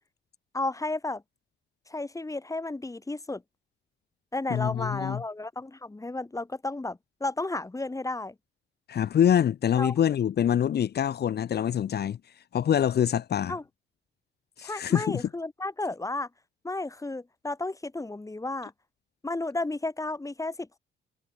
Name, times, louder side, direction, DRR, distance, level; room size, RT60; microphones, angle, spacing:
voice 1, 0.5-1.2 1.9-3.4 4.3-8.3 9.8-9.9 13.5-13.6 14.6-16.3 16.6-18.7 19.2-20.8, left 2 dB, 15° left, 3.8 m, -33 dB
voice 2, 4.5-5.2 8.9-12.2 12.5-13.6 14.6-15.3, left 9 dB, 55° left, 1.1 m, -25 dB
cardioid pair, 90°, 20 cm